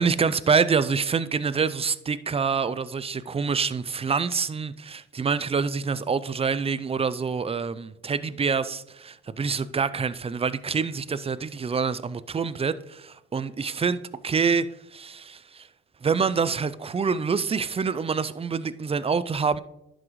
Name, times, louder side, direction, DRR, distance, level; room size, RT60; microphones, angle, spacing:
voice 1, 0.0-14.7 14.9-15.7 16.0-19.6, right 5 dB, 20° right, 0.4 m, -26 dB
11.0 x 6.1 x 3.1 m
cardioid pair, 90°, 30 cm